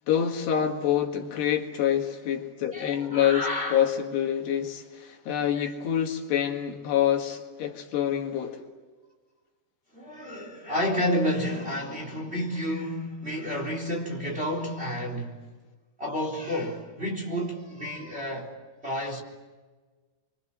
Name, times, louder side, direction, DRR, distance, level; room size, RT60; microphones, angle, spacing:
voice 1, 0.1-8.6, left 9 dB, 80° left, 4.1 m, -26 dB
voice 2, 2.7-3.8 5.6-5.7 9.9-15.4 16.0-18.5 18.8-19.2, equal, 15° right, 3.8 m, -30 dB
27.5 x 25.0 x 7.6 m
omnidirectional pair, 4.7 m